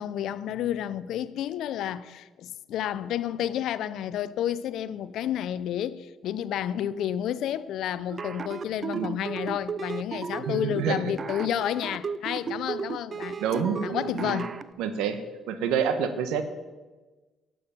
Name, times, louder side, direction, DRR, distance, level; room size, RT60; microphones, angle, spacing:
voice 1, 0.0-13.4 13.8-14.5, left 10 dB, 75° left, 0.5 m, -30 dB
sound 1, 8.1-14.6, right 6 dB, 40° right, 0.6 m, -34 dB
voice 2, 8.9-9.3 10.4-11.1 13.4-14.4 14.8-16.4, right 7 dB, 85° right, 1.1 m, -28 dB
11.5 x 7.8 x 5.8 m
supercardioid pair, 75°, 0 cm